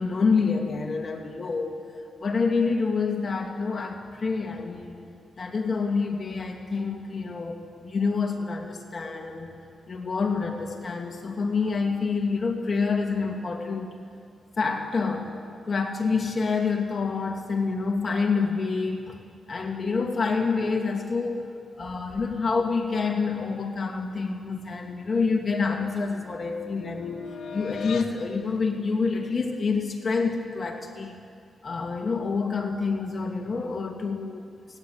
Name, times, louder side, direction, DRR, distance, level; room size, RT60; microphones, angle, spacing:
voice 1, 0.0-1.8 2.2-5.0 5.4-9.6 9.9-13.9 14.6-15.3 15.7-19.2 19.5-21.5 21.8-27.3 27.5-31.2 31.6-34.5, left 4 dB, 40° left, 2 dB, 2.3 m, -27 dB
sound 1, 25.0-28.2, left 7 dB, 65° left, 2.0 m, -40 dB
29.5 x 19.5 x 8.1 m, 2.3 s
wide cardioid pair, 130°, 0 cm